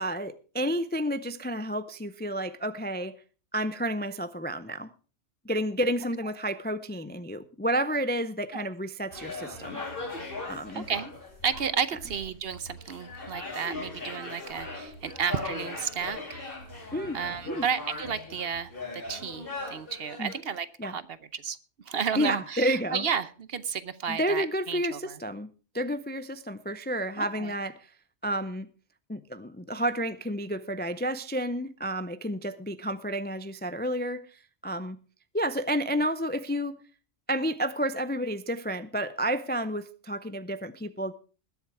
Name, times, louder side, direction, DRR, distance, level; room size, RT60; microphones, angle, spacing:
voice 1, 0.0-3.2 3.5-4.9 5.4-9.8 10.5-10.9 16.9-17.2 17.5-17.6 20.2-20.3 20.8-20.9 22.2-23.0 24.1-25.5 25.7-27.9 28.2-28.7 29.1-35.0 35.3-36.7 37.3-41.1, equal, 15° left, 0.4 m, -30 dB
sound 1, 9.1-20.3, left 2 dB, 50° left, 3.6 m, -39 dB
voice 2, 10.7-11.1 11.4-16.4 17.1-21.0 21.3-21.6 21.9-25.2 27.2-27.6, right 7 dB, 60° right, 1.0 m, -32 dB
20.5 x 7.3 x 4.6 m
omnidirectional pair, 1.2 m